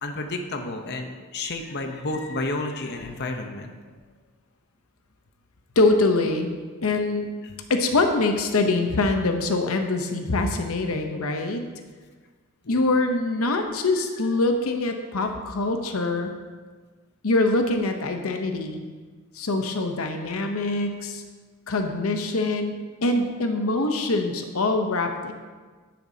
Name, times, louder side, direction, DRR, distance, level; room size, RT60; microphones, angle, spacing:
voice 1, 0.0-3.7 7.4-7.6 12.6-12.8, left 2 dB, 50° left, 4 dB, 0.8 m, -31 dB
voice 2, 5.8-6.5 6.8-7.3 7.7-11.6 12.7-16.3 17.2-18.9 19.3-21.2 21.7-25.3, left 2 dB, 80° left, 5 dB, 0.8 m, -24 dB
10.5 x 10.0 x 2.8 m, 1.4 s
head